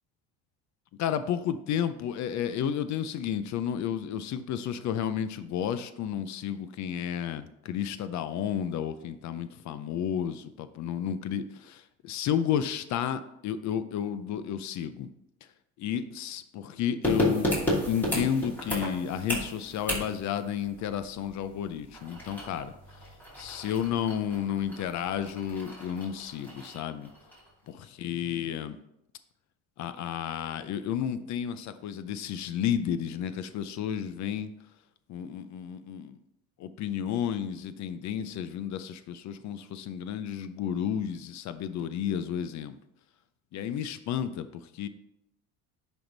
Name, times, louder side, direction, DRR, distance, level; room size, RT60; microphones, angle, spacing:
voice 1, 1.0-15.1 15.8-17.5 17.9-22.7 23.4-27.1 27.7-28.8 29.8-34.5 35.1-36.2 36.6-42.7 43.5-44.5 44.7-44.9, left 9 dB, 55° left, 12 dB, 0.6 m, -32 dB
sound 1, 17.0-27.5 27.8-27.9, equal, 5° left, 2.7 m, -34 dB
10.0 x 3.6 x 3.9 m, 0.81 s
supercardioid pair, 100°, 34 cm